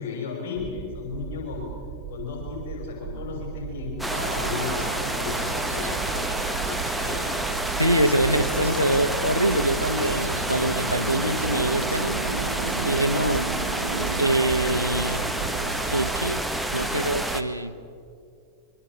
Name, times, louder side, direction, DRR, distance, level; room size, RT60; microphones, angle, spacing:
voice 1, 0.0-1.7 2.1-6.3 6.5-7.2, left 5 dB, 55° left, 0 dB, 6.3 m, -35 dB
sound 1, 0.6-17.4, right 9 dB, 45° right, 2.0 m, -38 dB
sound 2, 4.0-17.4, right 1 dB, ahead, 1.5 m, -29 dB
sound 3, 4.1-16.3, right 4 dB, 75° right, 1.7 m, -33 dB
voice 2, 7.8-12.1 12.8-13.5 14.2-15.3 15.9-16.4 16.7-17.8, right 1 dB, 90° left, 11 dB, 1.0 m, -24 dB
26.5 x 24.5 x 6.5 m, 2.5 s
figure-of-eight pair, 90°, 0 cm